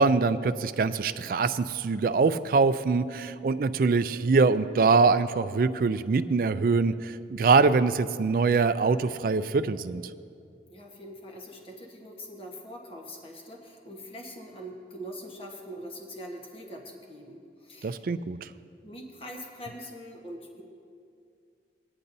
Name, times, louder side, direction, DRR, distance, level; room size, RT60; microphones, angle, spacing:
voice 1, 0.0-10.0 17.8-18.5, right 4 dB, 50° right, 12 dB, 0.3 m, -24 dB
voice 2, 10.7-18.1 18.8-20.6, equal, 30° left, 0 dB, 1.2 m, -43 dB
17.5 x 9.9 x 2.7 m, 2.4 s
head